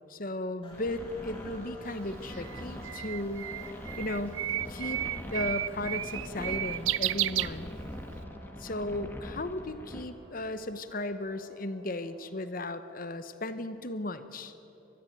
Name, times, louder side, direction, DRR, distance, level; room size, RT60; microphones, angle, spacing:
voice 1, 0.1-3.5 4.0-4.4 4.7-5.0 5.3-7.7 8.6-14.5, left 1 dB, 40° left, 11 dB, 1.0 m, -35 dB
sound 1, 0.6-14.0, left 1 dB, 25° left, 3.0 m, -54 dB
sound 2, 0.7-10.0, equal, 10° left, 1.3 m, -43 dB
Bird, 1.9-8.1, right 14 dB, 70° right, 0.4 m, -33 dB
21.0 x 13.5 x 9.2 m, 2.9 s
head